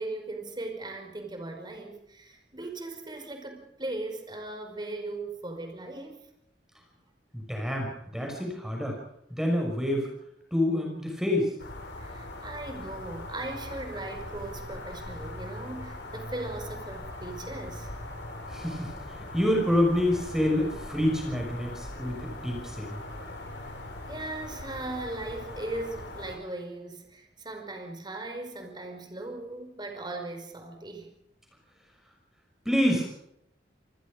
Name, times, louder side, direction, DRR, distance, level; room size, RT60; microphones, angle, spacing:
voice 1, 0.0-6.2 11.9-18.0 24.1-31.1, right 2 dB, 25° right, 4 dB, 5.1 m, -38 dB
voice 2, 7.3-7.9 8.1-8.9 9.3-10.1 10.5-11.5 18.5-23.0 32.7-33.1, left 1 dB, 5° right, 0 dB, 6.0 m, -27 dB
sound 1, 11.6-26.4, left 1 dB, 75° left, 5.7 m, -40 dB
27.5 x 20.5 x 5.2 m, 0.76 s
head